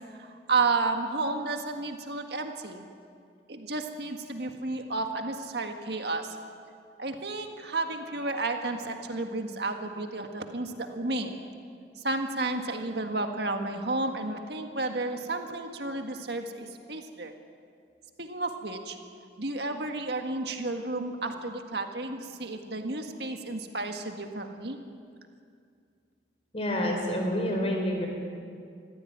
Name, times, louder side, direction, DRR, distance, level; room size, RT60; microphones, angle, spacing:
voice 1, 0.1-2.8 3.5-6.4 7.0-11.4 12.0-17.4 18.2-19.0 19.4-24.8, right 3 dB, 60° right, 5 dB, 1.7 m, -32 dB
voice 2, 26.5-28.1, left 1 dB, 35° left, 2 dB, 4.6 m, -28 dB
24.0 x 15.0 x 9.5 m, 2.3 s
head